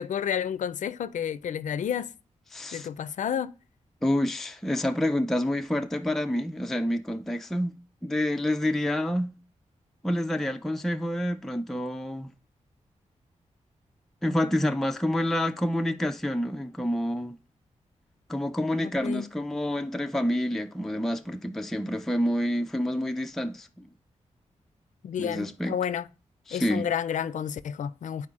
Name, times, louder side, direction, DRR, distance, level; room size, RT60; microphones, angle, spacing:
voice 1, 0.0-2.1 2.7-3.5 18.8-19.3 25.0-26.1 26.5-28.3, left 8 dB, 80° left, 0.4 m, -30 dB
voice 2, 2.5-2.9 4.0-7.7 8.0-9.3 10.0-12.3 14.2-17.4 18.3-23.9 25.2-25.8 26.5-26.9, left 1 dB, 5° left, 0.4 m, -28 dB
12.5 x 4.5 x 2.4 m
wide cardioid pair, 100°, 13 cm